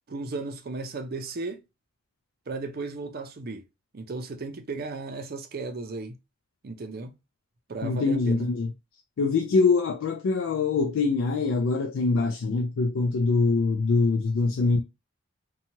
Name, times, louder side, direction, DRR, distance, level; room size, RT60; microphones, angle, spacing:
voice 1, 0.1-1.6 2.5-3.6 3.9-6.1 6.6-7.1 7.7-8.5 14.5-14.6, right 3 dB, 50° right, 0.5 m, -35 dB
voice 2, 7.8-8.7 9.2-14.8, left 3 dB, 75° left, 0.4 m, -24 dB
2.9 x 2.3 x 2.7 m
head